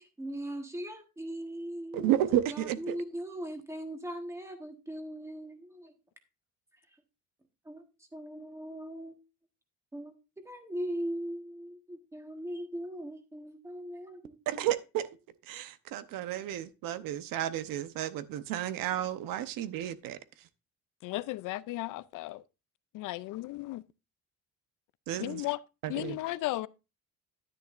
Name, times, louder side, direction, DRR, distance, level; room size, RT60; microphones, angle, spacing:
voice 1, 0.0-2.1 2.5-5.9 7.6-7.8 8.1-9.1 9.9-10.1 10.4-14.7, right 1 dB, 10° right, 1.3 m, -39 dB
voice 2, 1.9-3.0 14.5-15.1 15.5-20.2 25.1-25.4 25.8-26.2, right 12 dB, 85° right, 0.9 m, -32 dB
voice 3, 21.0-22.4 22.9-23.8 25.2-25.6 25.9-26.7, left 17 dB, 70° left, 0.5 m, -35 dB
10.5 x 9.9 x 2.5 m
cardioid pair, 175°, 33 cm